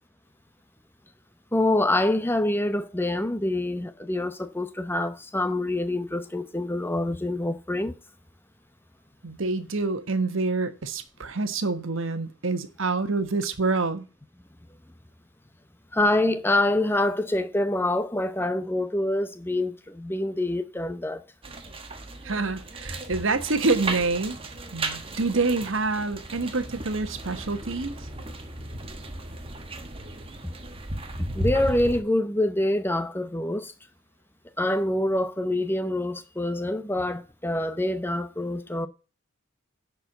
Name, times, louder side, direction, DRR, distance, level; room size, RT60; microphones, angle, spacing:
voice 1, 1.5-7.9 15.9-21.2 31.3-33.7 34.6-38.9, left 1 dB, 10° left, 0.7 m, -26 dB
voice 2, 9.2-14.0 22.2-27.9, right 3 dB, 65° right, 1.2 m, -27 dB
sound 1, 21.4-32.0, right 2 dB, 25° right, 1.2 m, -35 dB
10.5 x 4.7 x 6.5 m
head